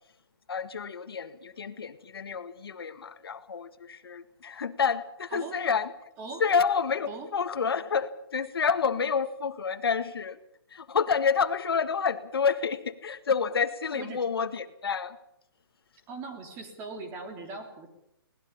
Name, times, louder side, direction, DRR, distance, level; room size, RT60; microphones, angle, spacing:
voice 1, 0.5-5.9 6.4-10.4 10.7-15.2, left 6 dB, 75° left, 10 dB, 1.8 m, -29 dB
voice 2, 13.9-14.3 16.1-17.9, right 3 dB, 20° right, 5 dB, 3.4 m, -40 dB
21.5 x 19.0 x 7.1 m, 0.79 s
hypercardioid pair, 160°, 13 cm